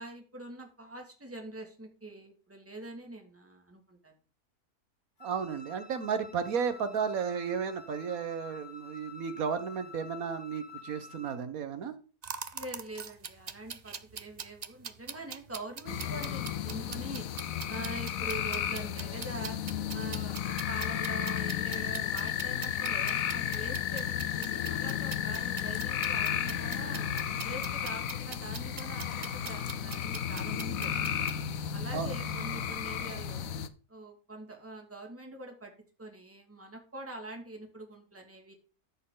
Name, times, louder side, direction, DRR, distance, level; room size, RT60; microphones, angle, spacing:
voice 1, 0.0-4.1 12.5-17.3 17.7-19.6 19.9-27.1 27.4-31.2 31.7-33.5 33.9-35.7 36.0-38.5, right 1 dB, 10° right, 2 dB, 2.1 m, -44 dB
Wind instrument woodwind instrument, 5.2-11.4, left 4 dB, 50° left, 2.2 m, -49 dB
voice 2, 5.2-11.9 31.9-32.1, right 6 dB, 65° right, 10 dB, 1.6 m, -33 dB
sound 1, 12.2-31.4, right 6 dB, 50° right, 0.5 m, -44 dB
sound 2, 15.9-33.7, left 9 dB, 65° left, 1.1 m, -33 dB
13.5 x 6.6 x 3.8 m, 0.38 s
omnidirectional pair, 1.6 m